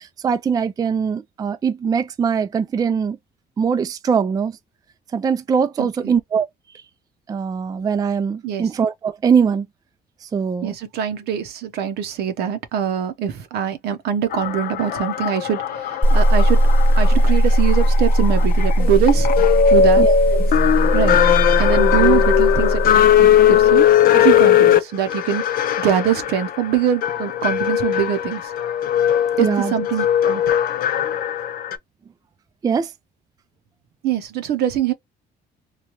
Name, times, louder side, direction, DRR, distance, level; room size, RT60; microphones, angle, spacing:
voice 1, 0.0-3.2 3.6-4.5 5.1-6.5 7.3-9.7 10.3-10.7 20.0-20.4 29.4-29.7 32.6-32.9, right 6 dB, 20° right, 0.3 m, -21 dB
voice 2, 5.8-6.2 8.4-8.7 10.6-16.6 17.0-19.3 19.7-20.0 20.9-21.2 21.6-23.9 24.1-28.5 29.4-30.4 34.0-34.9, right 9 dB, 75° right, 0.8 m, -23 dB
sound 1, 14.3-31.8, left 9 dB, 60° left, 0.6 m, -18 dB
sound 2, 16.0-23.8, right 1 dB, 10° left, 1.1 m, -18 dB
3.1 x 2.3 x 2.8 m
cardioid pair, 110°, 17 cm